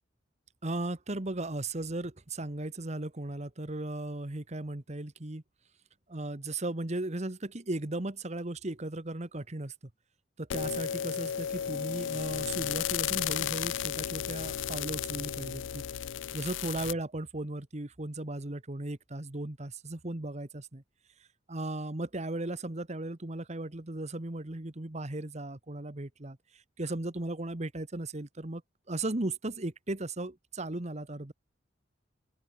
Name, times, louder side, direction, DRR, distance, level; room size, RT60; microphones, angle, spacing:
voice 1, 0.6-5.4 6.1-9.7 10.4-15.8 16.3-20.8 21.5-26.4 26.8-28.6 28.9-31.3, right 2 dB, 35° right, 1.4 m, -36 dB
sound 1, 10.5-16.9, left 9 dB, 75° left, 0.4 m, -34 dB
head